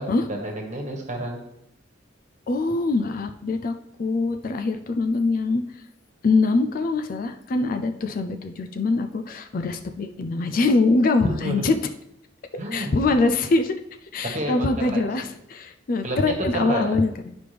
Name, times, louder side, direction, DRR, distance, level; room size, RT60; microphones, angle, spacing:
voice 1, 0.0-1.4 11.2-11.6 12.6-13.1 14.2-15.3 16.0-17.0, right 1 dB, 40° right, 1 dB, 1.5 m, -30 dB
voice 2, 2.5-5.6 6.2-11.8 12.7-13.7 14.1-17.3, left 3 dB, 50° left, 7 dB, 0.4 m, -23 dB
9.6 x 5.0 x 3.4 m, 0.81 s
head